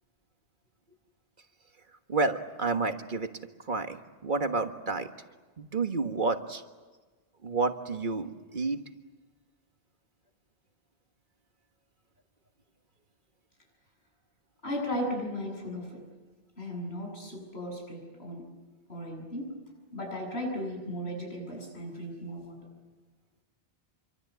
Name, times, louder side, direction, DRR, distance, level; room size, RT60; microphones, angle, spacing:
voice 1, 2.1-3.3 3.6-5.1 5.6-6.6 7.4-8.8, right 3 dB, 50° right, 7 dB, 1.6 m, -30 dB
voice 2, 14.6-16.0 16.6-18.4 18.9-19.5 19.9-22.6, equal, 90° left, 1 dB, 8.0 m, -36 dB
26.5 x 25.0 x 8.2 m, 1.3 s
omnidirectional pair, 1.1 m